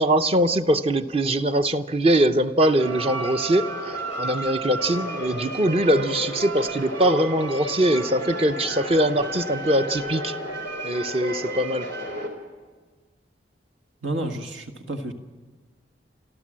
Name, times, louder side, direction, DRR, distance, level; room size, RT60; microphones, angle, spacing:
voice 1, 0.0-10.4 10.8-11.9, right 1 dB, 30° right, 10 dB, 0.7 m, -22 dB
sound 1, 2.6-12.3, equal, 65° right, 3.5 m, -32 dB
voice 2, 14.0-15.1, right 1 dB, 90° right, 6 dB, 1.7 m, -30 dB
28.5 x 13.5 x 7.5 m, 1.4 s
head